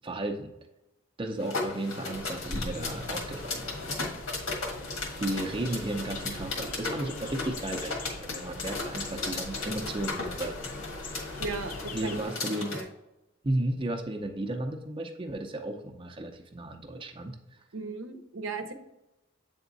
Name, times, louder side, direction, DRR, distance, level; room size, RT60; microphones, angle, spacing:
voice 1, 0.0-0.5 1.2-4.0 5.2-10.5 11.9-12.8 13.4-17.6, right 1 dB, 25° right, 3 dB, 0.6 m, -34 dB
sound 1, 1.4-12.8, left 3 dB, 85° left, 1.6 m, -36 dB
sound 2, 2.1-12.2, left 2 dB, 40° left, 0.5 m, -42 dB
voice 2, 11.4-12.2 12.7-12.9 17.7-18.7, right 3 dB, 75° right, 6 dB, 0.7 m, -36 dB
8.0 x 3.6 x 4.0 m, 0.92 s
head